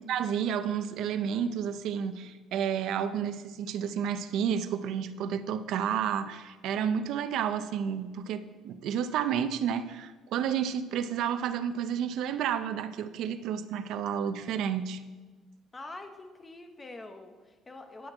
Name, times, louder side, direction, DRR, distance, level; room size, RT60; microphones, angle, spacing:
voice 1, 0.0-15.0, right 8 dB, 60° right, 12 dB, 0.5 m, -31 dB
voice 2, 15.7-18.1, left 2 dB, 15° left, 6 dB, 0.8 m, -45 dB
11.0 x 4.4 x 7.5 m, 1.3 s
cardioid pair, 170°, 0 cm